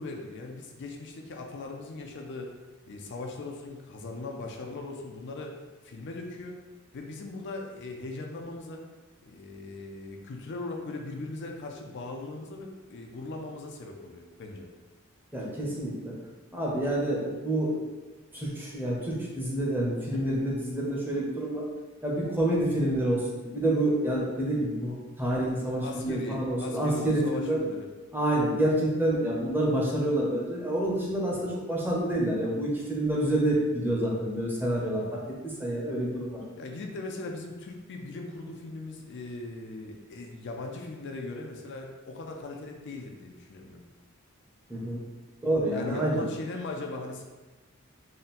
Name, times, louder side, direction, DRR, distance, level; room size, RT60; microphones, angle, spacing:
voice 1, 0.0-2.5 2.9-5.6 5.8-6.6 6.9-8.8 9.2-14.7 20.0-20.3 25.6-27.9 28.4-28.6 31.3-31.5 34.8-35.1 36.6-43.8 45.7-47.2, left 2 dB, 55° left, 2 dB, 0.4 m, -39 dB
voice 2, 15.3-16.1 16.5-17.8 18.3-21.7 22.0-27.6 28.1-35.2 35.6-36.4 44.7-45.0 45.4-46.2, right 1 dB, 10° right, -4 dB, 0.7 m, -28 dB
3.8 x 2.2 x 4.1 m, 1.2 s
head